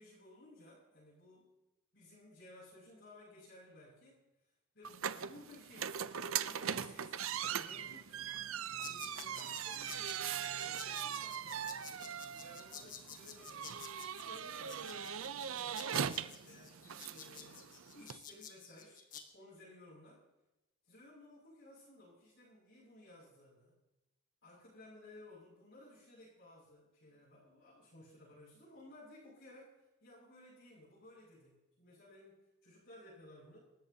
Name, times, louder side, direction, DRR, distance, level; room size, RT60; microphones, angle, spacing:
voice 1, 0.0-1.5 1.9-4.2 4.7-7.2 7.6-8.2 8.9-10.2 10.6-13.8 14.3-19.0 19.3-20.2 20.8-23.7 24.4-33.6, left 1 dB, 55° left, -8 dB, 6.3 m, -58 dB
sound 1, 4.8-18.2, right 8 dB, 75° right, 0.6 m, -40 dB
sound 2, 8.8-19.2, left 7 dB, 40° left, 1.5 m, -52 dB
27.0 x 14.0 x 2.8 m, 1.0 s
head